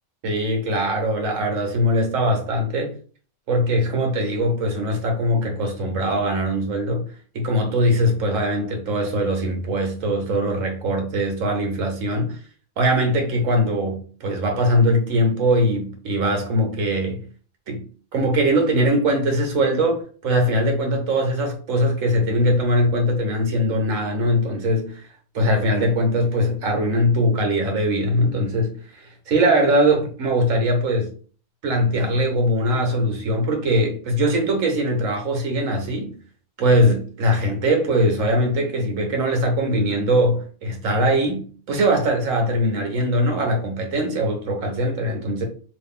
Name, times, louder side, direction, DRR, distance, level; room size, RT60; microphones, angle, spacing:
voice 1, 0.2-2.9 3.5-7.0 7.3-12.4 12.8-17.2 17.7-17.8 18.1-25.0 25.3-31.1 31.6-36.1 36.6-45.4, equal, 75° right, 1.3 m, -21 dB
3.1 x 2.5 x 3.5 m
omnidirectional pair, 1.4 m